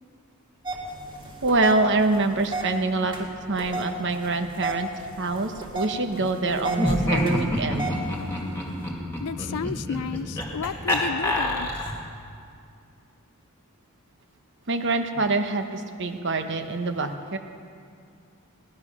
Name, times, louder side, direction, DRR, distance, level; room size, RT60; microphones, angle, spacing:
sound 1, 0.7-8.9, right 2 dB, 20° right, 2.2 m, -36 dB
voice 1, 1.4-4.9 5.2-8.0 14.7-17.4, right 3 dB, 55° right, 7 dB, 1.0 m, -25 dB
Laughter, 6.7-12.1, left 1 dB, 10° left, 2.0 m, -27 dB
voice 2, 9.2-11.7 15.2-15.3, left 6 dB, 85° left, 15 dB, 0.5 m, -32 dB
18.5 x 12.0 x 6.1 m, 2.3 s
head